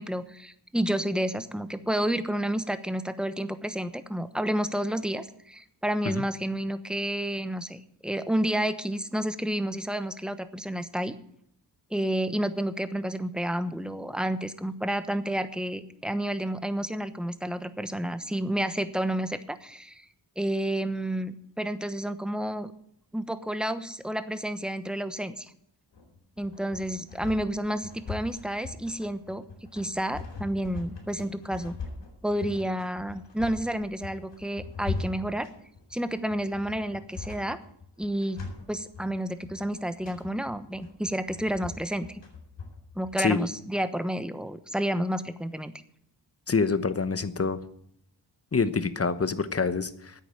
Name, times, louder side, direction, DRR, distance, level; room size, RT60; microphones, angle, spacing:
voice 1, 0.0-11.1 11.9-20.0 20.4-22.7 23.1-25.5 26.4-29.4 29.7-31.7 32.2-35.5 35.9-37.6 38.0-38.4 38.7-42.2 42.9-45.7, right 1 dB, ahead, 11 dB, 1.0 m, -30 dB
sound 1, 25.9-43.4, left 4 dB, 85° left, 4.2 m, -40 dB
voice 2, 46.5-47.6 48.5-50.1, left 4 dB, 35° left, 13 dB, 1.0 m, -26 dB
9.8 x 8.4 x 9.0 m, 0.71 s
cardioid pair, 70°, 42 cm